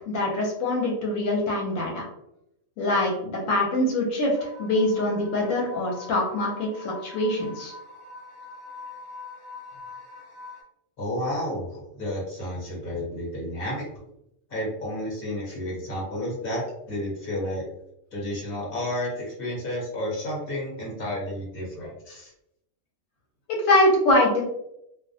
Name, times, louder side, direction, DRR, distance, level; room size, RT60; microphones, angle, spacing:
voice 1, 0.1-2.0 2.8-7.7 23.5-24.4, left 1 dB, 80° left, -2 dB, 1.0 m, -24 dB
sound 1, 4.3-10.6, left 3 dB, 65° right, 0.8 m, -43 dB
voice 2, 11.0-13.8 14.5-17.6 18.1-22.3, left 1 dB, 50° left, -4 dB, 1.1 m, -31 dB
2.3 x 2.1 x 2.6 m, 0.81 s
omnidirectional pair, 1.4 m